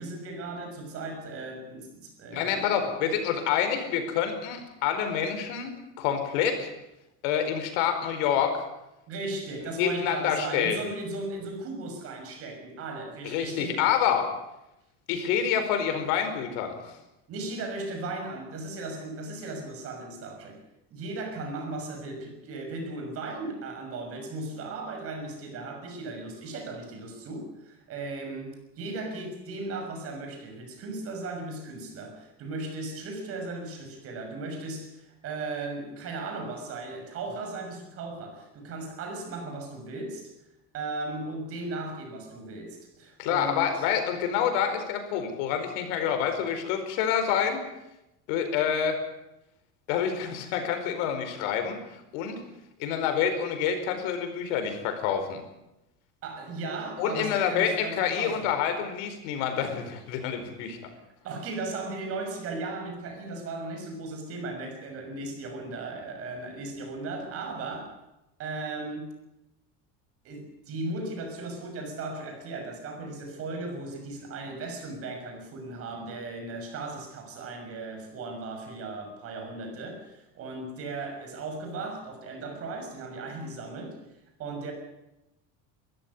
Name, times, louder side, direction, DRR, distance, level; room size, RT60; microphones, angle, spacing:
voice 1, 0.0-2.9 9.1-13.9 17.3-20.6 20.9-40.3 40.7-44.1 56.2-58.5 61.2-67.9 68.4-69.1 70.2-84.0 84.4-84.7, right 2 dB, 40° right, 4 dB, 6.4 m, -37 dB
voice 2, 2.3-6.7 7.2-8.6 9.8-10.8 13.2-14.3 15.1-17.0 43.2-47.6 48.3-49.0 49.9-51.8 52.1-52.4 52.8-55.4 57.0-60.8, left 8 dB, 85° left, 7 dB, 4.8 m, -27 dB
22.0 x 14.5 x 9.8 m, 0.91 s
cardioid pair, 175°, 36 cm